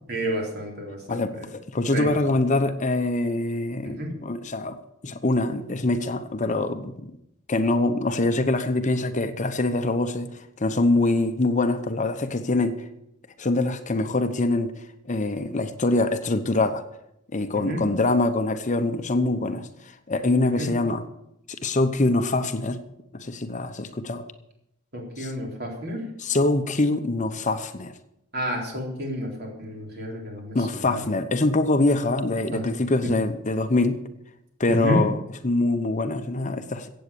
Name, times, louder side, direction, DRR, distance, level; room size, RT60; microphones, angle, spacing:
voice 1, 0.1-1.5 1.9-2.1 3.8-4.1 17.5-17.8 20.5-20.7 24.9-26.0 28.3-31.0 32.5-32.6 33.0-33.1 34.7-35.0, equal, 55° right, 0 dB, 3.9 m, -30 dB
voice 2, 1.1-4.8 5.0-7.1 7.5-10.3 10.6-12.8 13.4-14.7 15.1-16.8 17.3-19.7 20.1-21.0 21.6-22.8 23.1-24.2 25.2-25.3 26.2-27.9 30.5-34.0 34.6-35.2 35.4-36.9, left 2 dB, 40° left, 9 dB, 0.9 m, -24 dB
16.0 x 8.3 x 6.9 m, 0.81 s
head